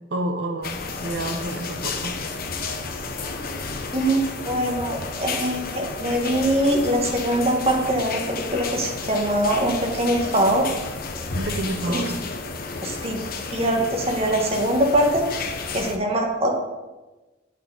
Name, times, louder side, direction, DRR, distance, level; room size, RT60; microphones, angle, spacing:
voice 1, 0.1-2.1 11.4-12.1, right 1 dB, 65° right, 5 dB, 0.9 m, -29 dB
sound 1, 0.6-16.0, left 4 dB, 50° left, 0.8 m, -32 dB
voice 2, 3.9-10.7 11.9-12.0 12.8-13.2 13.5-15.2 15.7-16.5, right 1 dB, 35° right, 1 dB, 1.4 m, -22 dB
8.7 x 6.6 x 3.9 m, 1.1 s
head